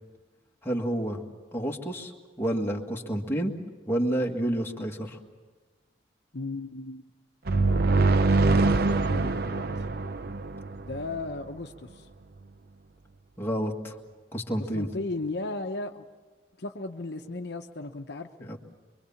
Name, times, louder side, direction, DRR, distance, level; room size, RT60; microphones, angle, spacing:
voice 1, 0.6-1.2 1.5-2.1 2.4-3.5 3.9-5.2 13.4-14.0 14.3-14.9 18.4-18.6, right 1 dB, 15° left, 0 dB, 1.8 m, -29 dB
voice 2, 6.3-7.0 7.5-7.9 8.5-9.7 10.8-12.1 14.6-16.0 16.6-18.5, left 2 dB, 65° left, 5 dB, 1.0 m, -36 dB
sound 1, 7.5-11.2, right 3 dB, 60° right, 0.6 m, -24 dB
24.0 x 24.0 x 7.2 m, 1.3 s
head